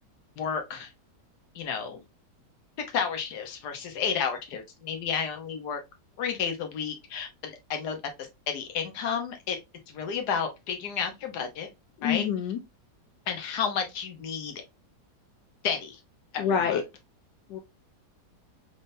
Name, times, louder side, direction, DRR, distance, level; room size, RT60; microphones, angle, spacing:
voice 1, 0.4-0.9 1.5-2.0 2.9-5.8 6.2-9.6 9.9-11.7 12.0-12.3 13.3-14.6 15.6-16.0 16.3-16.8, left 6 dB, 70° left, 1.5 m, -31 dB
voice 2, 12.0-12.6 16.4-16.8 17.5-17.6, left 8 dB, 85° left, 1.3 m, -26 dB
4.0 x 3.6 x 2.6 m
omnidirectional pair, 1.9 m